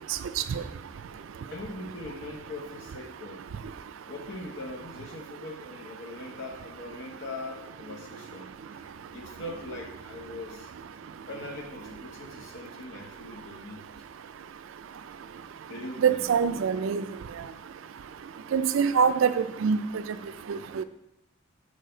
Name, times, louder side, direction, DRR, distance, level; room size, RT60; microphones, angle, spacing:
voice 1, 1.5-3.5 4.1-10.7 11.3-13.9 15.7-16.3, left 2 dB, 65° left, 2 dB, 0.9 m, -41 dB
voice 2, 16.0-17.0 18.5-19.8 20.5-20.8, right 6 dB, 75° right, 12 dB, 0.4 m, -24 dB
6.4 x 4.9 x 3.8 m, 0.90 s
head